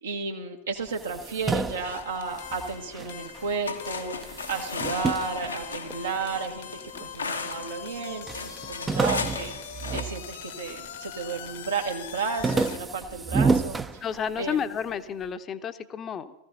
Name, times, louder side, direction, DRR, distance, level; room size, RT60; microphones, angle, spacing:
voice 1, 0.0-14.0 14.4-14.6, right 4 dB, 70° right, -1 dB, 1.4 m, -33 dB
sound 1, 0.9-3.5 3.8-6.3 6.9-7.6 7.9-8.0 8.3-10.9 11.2-11.7 12.0-14.6, right 4 dB, 15° right, 0.7 m, -30 dB
sound 2, 1.7-12.8, left 9 dB, 60° left, 1.5 m, -42 dB
sound 3, 3.2-3.3 3.7-7.8 8.3-10.0, left 4 dB, 75° left, 1.5 m, -35 dB
voice 2, 14.0-16.5, left 7 dB, 25° left, 11 dB, 0.9 m, -31 dB
17.5 x 15.0 x 4.1 m, 0.89 s
figure-of-eight pair, 90°, 0 cm